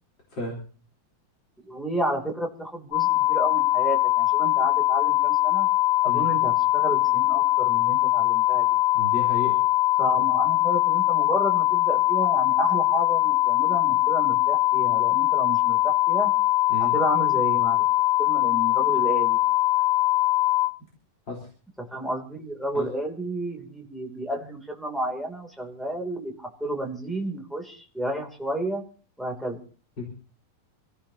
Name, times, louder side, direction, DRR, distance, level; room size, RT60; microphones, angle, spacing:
voice 1, 1.7-5.7 6.0-8.7 10.0-16.3 16.8-17.9 18.2-19.4 21.8-28.8 29.2-29.6, right 1 dB, ahead, 0 dB, 2.2 m, -31 dB
sound 1, 2.9-20.7, left 16 dB, 60° left, 3.5 m, -22 dB
voice 2, 8.9-9.5 16.7-16.9 21.3-21.5 22.7-22.8 30.0-30.1, left 3 dB, 30° left, -4 dB, 4.3 m, -32 dB
27.5 x 16.5 x 2.9 m, 0.40 s
omnidirectional pair, 4.1 m